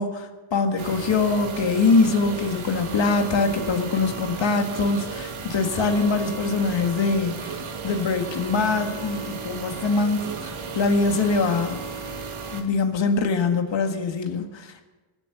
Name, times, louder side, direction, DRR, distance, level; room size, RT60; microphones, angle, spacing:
voice 1, 0.0-11.8 12.5-14.8, left 4 dB, 65° left, 5 dB, 2.0 m, -23 dB
sound 1, 0.8-12.6, right 4 dB, 85° right, 2.1 m, -34 dB
23.5 x 8.7 x 7.1 m, 1.2 s
wide cardioid pair, 150°, 48 cm